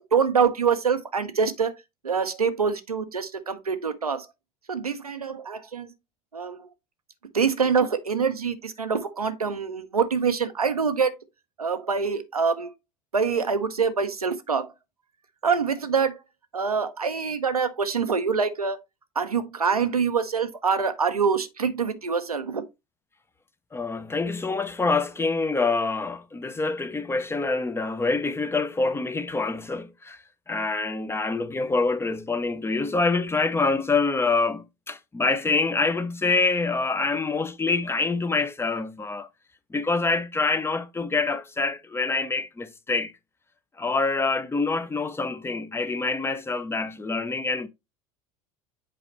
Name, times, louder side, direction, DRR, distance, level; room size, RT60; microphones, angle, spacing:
voice 1, 0.0-1.7 2.0-4.3 4.7-5.9 6.3-6.7 7.3-11.1 11.6-12.7 13.1-14.7 15.4-16.2 16.5-18.8 19.2-22.6, right 5 dB, 85° right, 0.7 m, -25 dB
voice 2, 23.7-39.3 39.7-43.1 43.8-47.7, left 3 dB, 15° left, 0.7 m, -26 dB
7.7 x 4.9 x 3.1 m
figure-of-eight pair, 70°, 19 cm